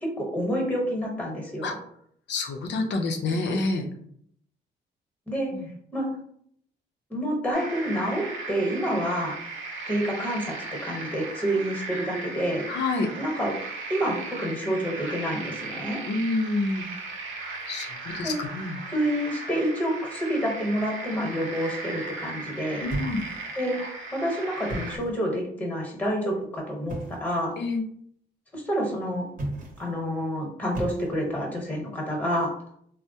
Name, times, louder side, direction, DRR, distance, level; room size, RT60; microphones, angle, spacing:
voice 1, 0.0-1.8 5.3-5.5 5.9-6.1 7.1-9.3 9.9-10.5 10.8-12.7 13.1-13.6 13.9-16.0 18.2-18.4 18.9-22.9 23.6-23.8 24.1-26.9 27.2-27.6 28.5-29.3 29.8-32.5, equal, 5° left, 0 dB, 1.1 m, -28 dB
voice 2, 2.3-3.9 5.5-5.7 11.6-11.7 12.7-13.1 16.1-16.9 17.7-18.8 22.8-23.2 27.6-27.8, left 3 dB, 65° left, 4 dB, 0.6 m, -28 dB
sound 1, 7.5-25.0, right 3 dB, 75° right, 0.7 m, -37 dB
sound 2, 22.9-23.7 24.5-25.2 26.9-27.3 29.3-30.0 30.7-31.4, right 1 dB, 45° right, 0.9 m, -35 dB
3.3 x 2.0 x 2.7 m, 0.67 s
cardioid pair, 90°, 20 cm